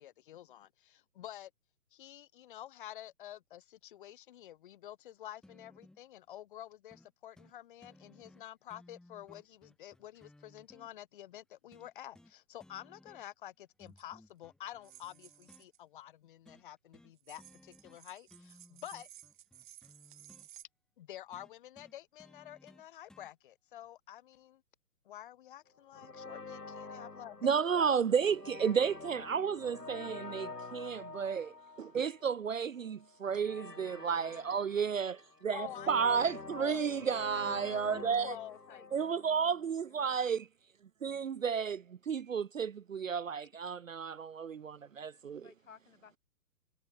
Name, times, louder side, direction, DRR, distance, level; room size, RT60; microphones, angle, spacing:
voice 1, 0.0-1.5 1.9-19.1 21.0-24.6 25.0-28.0 35.5-36.2 36.5-37.0 37.9-38.8, left 12 dB, 30° left, 2.4 m, -49 dB
sound 1, 5.4-6.0 6.9-7.1 7.4-7.5 7.8-10.9 11.7-12.3 12.6-13.4 13.8-15.7 16.5-16.7 16.9-17.1 17.4-18.0 18.3-20.5 21.3-23.3 24.3-24.4, left 1 dB, ahead, 2.6 m, -60 dB
sound 2, 13.9-14.0 14.8-15.8 17.2-20.6, right 13 dB, 30° right, 2.5 m, -56 dB
sound 3, 25.9-39.7, left 3 dB, 75° left, 2.7 m, -48 dB
voice 2, 27.4-35.1 35.4-38.3 38.9-40.4 41.0-45.5, right 6 dB, 55° right, 0.5 m, -32 dB
voice 3, 36.9-38.9 39.9-40.4 45.3-46.2, left 7 dB, 50° left, 3.8 m, -59 dB
figure-of-eight pair, 135°, 48 cm